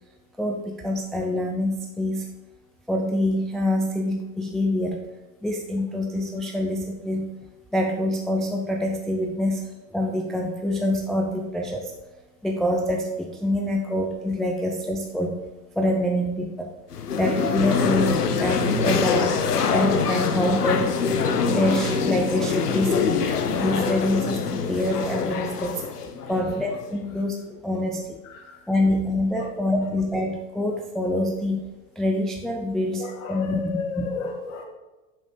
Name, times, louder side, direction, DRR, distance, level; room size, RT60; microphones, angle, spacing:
voice 1, 0.4-2.3 2.9-5.1 5.4-7.3 7.7-9.6 9.9-11.9 12.4-15.4 15.8-16.7 17.1-19.4 19.7-20.9 21.5-23.2 23.6-25.8 26.3-28.2 28.7-31.6 32.0-33.6 34.0-34.1, left 1 dB, ahead, 1 dB, 0.4 m, -25 dB
sound 1, 16.9-26.9, left 5 dB, 90° left, 1.0 m, -24 dB
voice 2, 28.2-28.6 29.3-29.5 33.0-34.6, left 4 dB, 60° left, 2 dB, 1.9 m, -33 dB
7.1 x 6.4 x 5.2 m, 1.1 s
hypercardioid pair, 110°, 45 cm